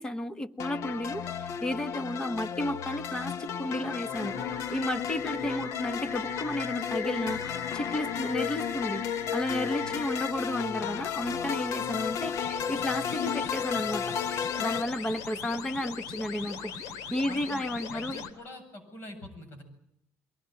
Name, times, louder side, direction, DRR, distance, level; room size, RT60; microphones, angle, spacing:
voice 1, 0.0-4.3 4.7-9.0 9.3-14.1 14.6-16.7 17.1-18.2, left 1 dB, 15° left, 11 dB, 1.2 m, -33 dB
sound 1, 0.6-14.8, left 8 dB, 55° left, 1.1 m, -33 dB
sound 2, 4.1-10.3 11.9-18.3, left 6 dB, 85° left, 2.8 m, -40 dB
voice 2, 17.2-19.6, left 1 dB, 40° left, 6 dB, 7.7 m, -45 dB
23.5 x 19.5 x 9.1 m, 0.80 s
cardioid pair, 165°, 6 cm